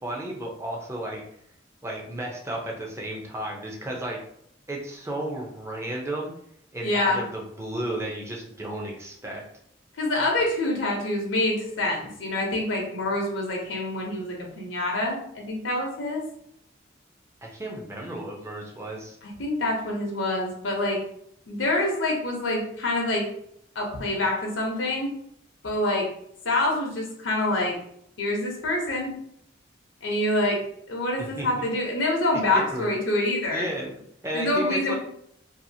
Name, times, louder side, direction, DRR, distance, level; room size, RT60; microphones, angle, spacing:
voice 1, 0.0-1.2 1.8-4.2 4.7-6.3 6.7-9.4 17.4-19.2 31.2-31.6 32.7-32.9 33.5-34.9, right 1 dB, 15° right, -1 dB, 0.5 m, -33 dB
voice 2, 6.8-7.2 10.0-16.2 19.2-21.0 21.5-23.2 23.7-25.1 25.6-26.1 26.4-27.7 28.2-29.1 30.0-30.6 30.9-33.7 34.3-34.9, left 2 dB, 85° left, 0 dB, 0.7 m, -26 dB
2.7 x 2.4 x 2.7 m, 0.71 s
head